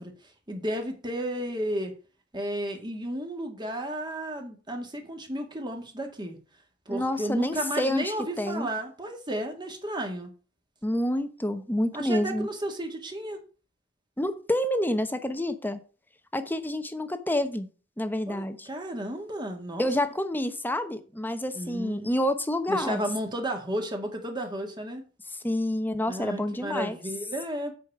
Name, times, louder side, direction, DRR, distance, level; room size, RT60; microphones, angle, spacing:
voice 1, 0.0-1.9 2.3-6.4 6.9-10.3 11.9-13.4 18.3-19.9 21.5-22.1 22.7-25.0 26.1-27.7, right 1 dB, 25° right, 3 dB, 2.1 m, -33 dB
voice 2, 6.9-8.7 10.8-12.5 14.2-15.8 16.3-17.7 18.0-18.7 19.8-23.0 25.4-27.0, left 1 dB, 10° left, 9 dB, 1.0 m, -28 dB
8.3 x 5.2 x 7.2 m, 0.36 s
head